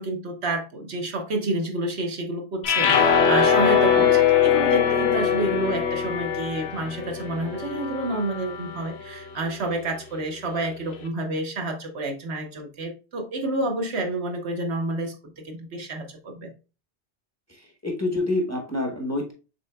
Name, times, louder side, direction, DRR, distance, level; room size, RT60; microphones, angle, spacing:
voice 1, 0.0-16.5, right 1 dB, 75° right, 4 dB, 1.1 m, -29 dB
sound 1, 2.6-8.9, left 7 dB, 65° left, 0.9 m, -22 dB
voice 2, 17.5-19.3, left 2 dB, 15° left, 1 dB, 1.0 m, -28 dB
6.5 x 3.7 x 2.2 m, 0.32 s
omnidirectional pair, 1.1 m